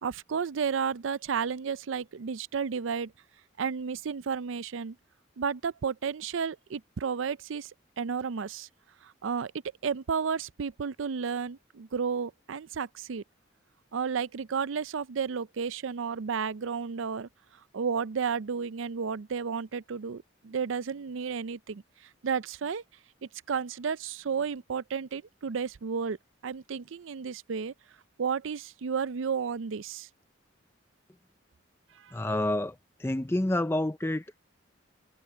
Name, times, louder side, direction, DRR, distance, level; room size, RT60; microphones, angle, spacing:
voice 1, 0.0-3.1 3.6-5.0 5.4-7.7 8.0-8.7 9.0-9.5 9.8-13.2 13.9-17.3 17.7-21.8 22.2-22.8 23.5-26.2 26.4-27.7 28.2-30.1 32.0-32.2, right 6 dB, 80° right, 0.5 m, -32 dB
voice 2, 32.1-34.4, left 1 dB, 10° left, 0.5 m, -29 dB
head